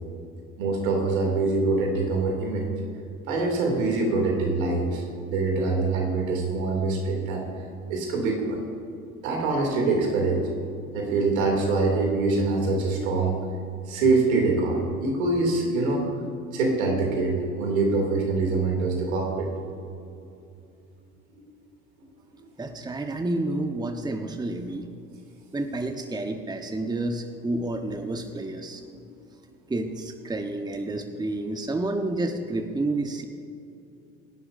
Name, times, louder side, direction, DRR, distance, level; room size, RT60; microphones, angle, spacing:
voice 1, 0.6-2.7 3.3-7.4 7.9-8.6 9.2-10.4 10.9-13.4 13.9-16.0 16.5-19.5 22.3-22.4 28.9-29.0, right 3 dB, 75° right, 1 dB, 2.9 m, -24 dB
voice 2, 22.6-24.9 25.5-28.8 29.7-33.2, right 2 dB, 10° right, 6 dB, 1.1 m, -30 dB
24.5 x 11.0 x 2.7 m, 2.6 s
figure-of-eight pair, 65°, 42 cm